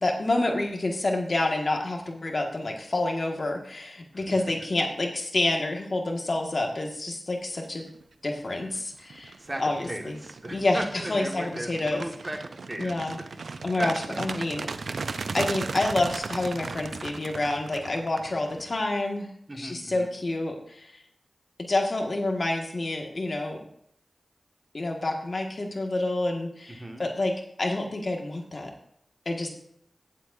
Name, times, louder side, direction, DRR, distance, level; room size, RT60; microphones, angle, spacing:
voice 1, 0.0-7.9 8.2-9.3 9.6-10.2 10.5-12.1 12.8-13.2 13.6-14.7 15.3-19.3 19.5-21.0 21.6-23.6 24.7-28.7 29.3-29.5, left 2 dB, 60° left, 1 dB, 1.8 m, -28 dB
sound 1, 8.0-8.3 8.7-18.9, right 4 dB, 85° right, 0.5 m, -37 dB
voice 2, 9.9-13.0 13.8-13.9 19.5-20.1 26.8-27.0, right 1 dB, 30° right, 2 dB, 1.7 m, -36 dB
15.5 x 7.5 x 2.7 m, 0.68 s
cardioid pair, 40°, 0 cm